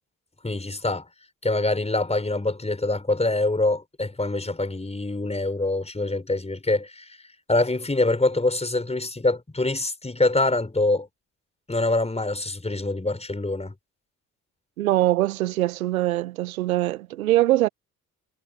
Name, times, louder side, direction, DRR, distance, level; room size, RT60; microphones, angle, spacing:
voice 1, 0.4-1.0 1.4-7.2 7.5-11.1 11.7-13.7, left 2 dB, 15° left, 5.0 m, -25 dB
voice 2, 14.8-17.7, right 15 dB, 85° right, 1.7 m, -22 dB
hypercardioid pair, 45°, 41 cm